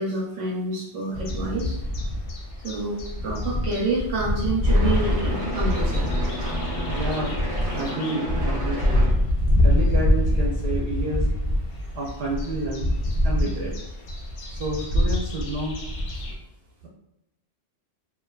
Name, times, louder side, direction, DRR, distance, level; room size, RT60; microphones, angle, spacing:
voice 1, 0.0-1.8 2.6-6.1, right 2 dB, 90° right, -5 dB, 1.0 m, -28 dB
sound 1, 1.1-16.3, left 1 dB, 65° left, 0.7 m, -25 dB
sound 2, 4.6-9.2, equal, 20° right, 0.5 m, -32 dB
voice 2, 6.9-9.2 9.6-11.3 11.9-12.9 13.2-13.7 14.5-15.8, right 2 dB, 65° right, -4 dB, 0.7 m, -30 dB
2.5 x 2.2 x 2.2 m, 0.85 s
omnidirectional pair, 1.2 m